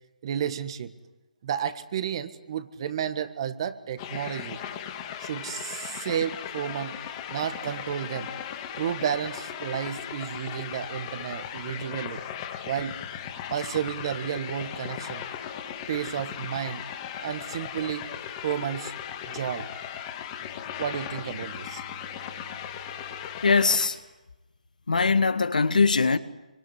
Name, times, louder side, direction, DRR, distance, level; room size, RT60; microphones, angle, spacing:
voice 1, 0.2-0.9 1.4-4.6 5.2-7.0 7.3-8.3 8.8-12.2 12.6-13.0 13.5-15.3 15.9-16.9 17.2-18.1 18.4-18.9 19.3-19.7 20.8-21.8, right 9 dB, 40° right, 1.6 m, -32 dB
sound 1, 4.0-23.9, left 9 dB, 25° left, 2.5 m, -37 dB
voice 2, 23.4-24.0 24.9-26.2, left 4 dB, 75° left, 1.7 m, -21 dB
24.5 x 24.5 x 9.8 m
figure-of-eight pair, 150°, 4 cm